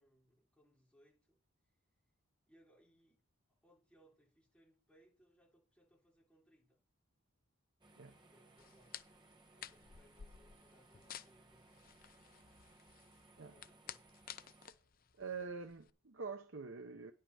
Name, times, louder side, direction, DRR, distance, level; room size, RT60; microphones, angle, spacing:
voice 1, 0.0-1.4 2.5-3.2 3.6-6.8 8.3-9.0 9.5-11.8 13.4-14.1, equal, 5° left, 4.2 m, -70 dB
sound 1, 7.8-14.7, right 2 dB, 20° right, 1.1 m, -65 dB
sound 2, 8.6-15.9, left 9 dB, 40° left, 0.5 m, -54 dB
voice 2, 15.2-17.1, right 5 dB, 65° right, 0.8 m, -45 dB
10.5 x 5.7 x 6.3 m
head